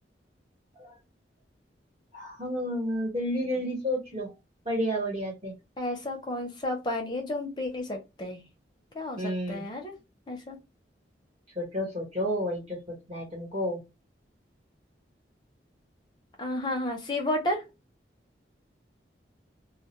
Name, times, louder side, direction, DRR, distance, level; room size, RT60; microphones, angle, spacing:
voice 1, 2.1-4.3 4.6-5.5 9.2-9.6 11.5-13.8, equal, 35° right, 1.1 m, -31 dB
voice 2, 5.8-8.4 8.9-10.0 10.3-10.6 16.4-17.6, left 1 dB, 25° left, 0.6 m, -32 dB
2.2 x 2.1 x 2.9 m
head